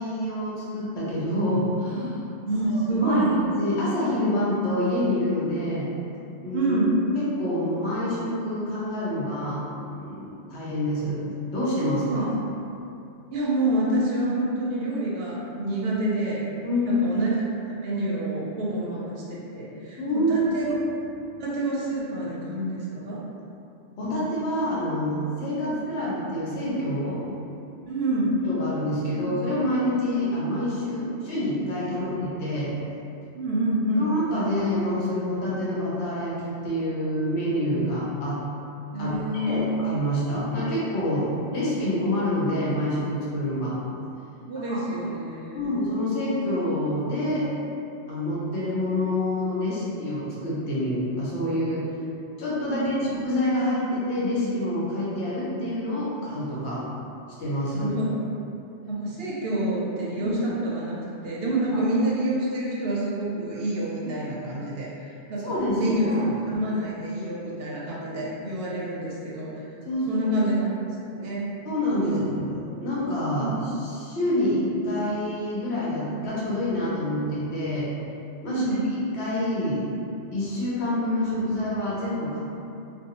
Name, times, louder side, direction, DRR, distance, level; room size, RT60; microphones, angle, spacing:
voice 1, 0.0-2.2 2.7-5.9 6.4-6.7 7.2-11.2 11.5-12.3 16.6-17.0 20.0-20.7 24.0-27.2 28.4-32.7 34.0-38.4 39.0-43.8 44.5-44.8 45.5-47.5 48.1-51.9 52.4-53.0 53.2-56.8 57.4-57.9 60.1-60.3 61.7-61.8 64.0-64.2 65.4-66.3 69.8-70.5 71.6-77.9 78.4-78.6 79.1-79.9 80.3-82.4, left 1 dB, 75° left, -8 dB, 1.0 m, -27 dB
voice 2, 2.5-3.4 6.5-7.0 12.1-12.3 13.3-16.4 16.8-17.3 17.6-20.0 20.3-20.7 21.4-23.2 25.5-25.7 27.8-28.4 29.1-29.2 31.9-32.0 33.3-34.0 38.9-39.8 44.4-45.7 52.7-53.0 57.7-58.2 58.9-69.5 70.1-70.8 71.2-71.5 72.0-72.4 73.3-73.8 78.5-78.9, right 1 dB, 65° right, -6 dB, 0.7 m, -27 dB
2.6 x 2.3 x 2.8 m, 2.7 s
omnidirectional pair, 1.2 m